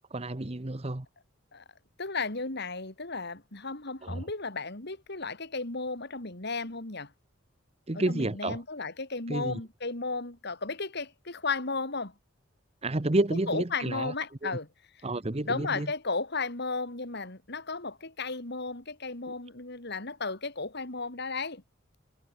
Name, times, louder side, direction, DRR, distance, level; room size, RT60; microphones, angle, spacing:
voice 1, 0.1-1.1 4.0-4.3 7.9-8.6 9.3-9.6 12.8-14.1 14.4-14.6 15.0-15.9, right 2 dB, 30° right, 1.1 m, -30 dB
voice 2, 2.0-7.1 7.9-12.1 13.5-14.7 15.5-21.6, left 3 dB, 55° left, 3.3 m, -34 dB
head